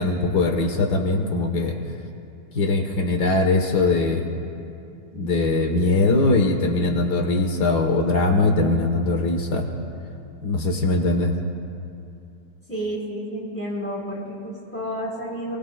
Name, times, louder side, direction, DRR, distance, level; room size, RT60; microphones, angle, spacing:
voice 1, 0.0-1.8 2.5-4.3 5.1-9.7 10.4-11.3, left 2 dB, 85° left, 2 dB, 1.9 m, -21 dB
voice 2, 12.7-15.6, equal, 10° left, -5 dB, 4.3 m, -30 dB
28.0 x 20.0 x 2.3 m, 2.5 s
omnidirectional pair, 1.7 m